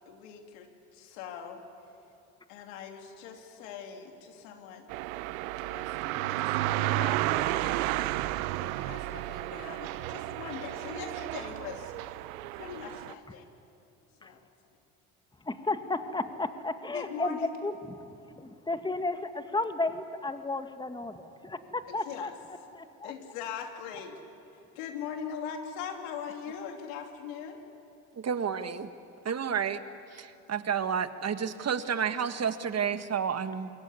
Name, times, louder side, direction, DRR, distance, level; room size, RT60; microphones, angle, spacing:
voice 1, 0.1-1.6 2.5-4.9 5.6-7.8 8.6-11.9 12.5-13.5 14.2-14.5 16.9-17.6 21.9-22.3 23.0-24.2 24.7-27.6, left 7 dB, 85° left, 4 dB, 2.9 m, -41 dB
sound 1, 4.9-13.1, right 16 dB, 85° right, 0.7 m, -32 dB
voice 2, 15.4-22.3 22.7-23.1, left 2 dB, 10° left, 8 dB, 1.8 m, -33 dB
voice 3, 28.2-28.9 29.3-29.8 30.1-33.7, right 7 dB, 40° right, 10 dB, 1.6 m, -30 dB
27.0 x 22.5 x 9.7 m, 2.6 s
hypercardioid pair, 70°, 40 cm